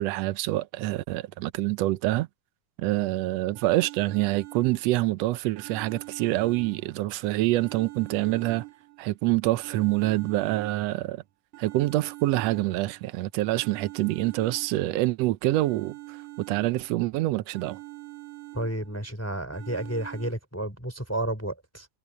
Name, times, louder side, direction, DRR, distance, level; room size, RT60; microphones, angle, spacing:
voice 1, 0.0-2.3 2.8-8.6 9.0-11.2 11.6-16.2 16.5-17.8, right 17 dB, 80° right, 1.5 m, -26 dB
sound 1, 3.6-5.1 5.6-7.1 7.6-9.1 9.6-11.1 11.5-13.1 13.5-15.1 15.5-17.1 17.5-19.1 19.5-20.3, right 21 dB, 65° right, 3.7 m, -45 dB
voice 2, 18.5-21.9, right 1 dB, 5° left, 3.4 m, -31 dB
omnidirectional pair, 3.7 m